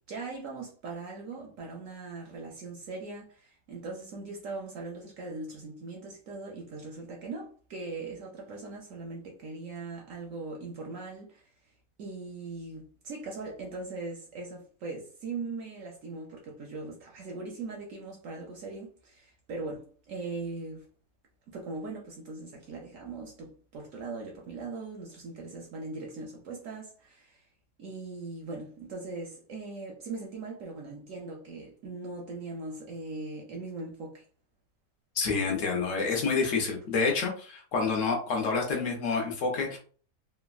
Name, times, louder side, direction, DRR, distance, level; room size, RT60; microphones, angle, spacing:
voice 1, 0.1-11.5 12.0-20.8 21.5-27.4 27.8-34.2, right 3 dB, 65° right, 0.8 m, -40 dB
voice 2, 35.2-39.8, left 4 dB, 60° left, 0.9 m, -28 dB
3.2 x 2.1 x 2.3 m
omnidirectional pair, 1.8 m